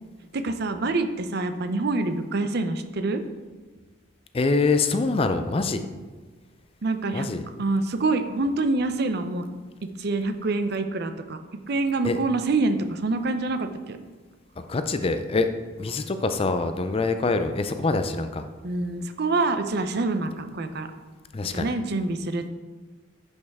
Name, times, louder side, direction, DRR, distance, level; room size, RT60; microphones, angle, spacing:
voice 1, 0.3-3.2 6.8-7.3 7.6-9.5 10.0-11.4 11.7-14.0 18.6-20.9 21.5-22.5, right 3 dB, 50° right, 9 dB, 0.6 m, -26 dB
voice 2, 4.3-5.8 7.1-7.4 12.0-12.2 14.6-15.5 15.8-18.4 21.3-21.7, left 3 dB, 30° left, 8 dB, 0.4 m, -25 dB
10.5 x 5.3 x 3.5 m, 1.3 s
head